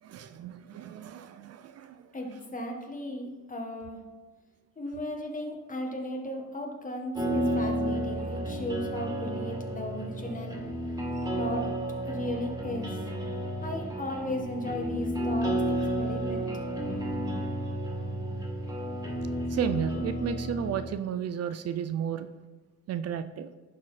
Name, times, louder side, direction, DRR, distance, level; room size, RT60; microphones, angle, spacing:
voice 1, 0.0-2.1 11.1-11.3 19.5-22.3 22.9-23.5, right 8 dB, 55° right, 12 dB, 0.5 m, -33 dB
voice 2, 2.1-4.0 4.8-10.6 11.4-11.7 12.0-13.1 13.6-16.5, left 1 dB, 25° left, 1 dB, 1.6 m, -36 dB
sound 1, 7.2-20.8, right 1 dB, 10° right, 2.3 m, -32 dB
11.0 x 4.2 x 4.2 m, 1.3 s
cardioid pair, 90°, 30 cm